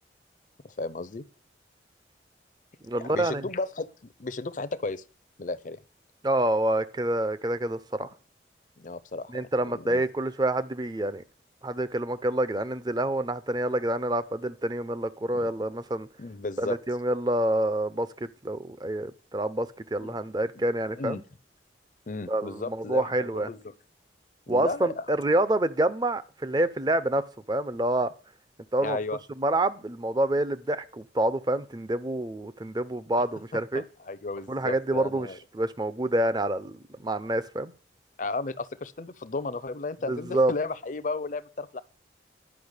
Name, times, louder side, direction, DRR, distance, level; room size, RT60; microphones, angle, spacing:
voice 1, 0.6-1.3 3.0-3.9 4.2-5.0 5.4-5.8 8.8-9.5 9.7-10.0 15.3-15.5 16.2-16.8 20.0-20.1 20.9-21.2 22.1-23.6 24.5-25.1 28.8-29.2 33.5-35.4 38.2-41.8, left 3 dB, 45° left, 0.6 m, -34 dB
voice 2, 2.8-3.5 6.2-8.1 9.3-11.2 11.6-16.1 16.6-21.2 22.3-23.5 24.5-28.1 28.7-29.0 29.4-33.8 34.5-35.3 35.5-37.7 40.1-40.5, right 1 dB, 25° right, 0.6 m, -27 dB
10.5 x 5.6 x 8.1 m
head